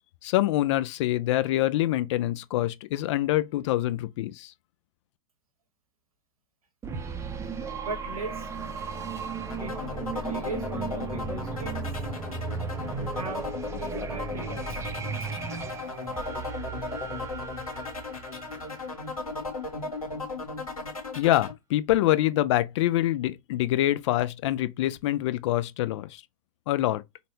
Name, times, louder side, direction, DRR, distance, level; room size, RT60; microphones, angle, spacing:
voice 1, 0.2-4.5 21.2-26.2 26.7-27.0, left 14 dB, 55° left, 0.4 m, -25 dB
sound 1, 6.8-19.5, right 5 dB, 15° right, 0.5 m, -36 dB
voice 2, 7.7-8.5 9.5-11.9 12.9-13.5 13.8-14.9, right 3 dB, 85° right, 1.2 m, -39 dB
sound 2, 9.5-21.5, left 3 dB, 85° left, 1.4 m, -36 dB
4.0 x 2.2 x 2.7 m
figure-of-eight pair, 95°, 18 cm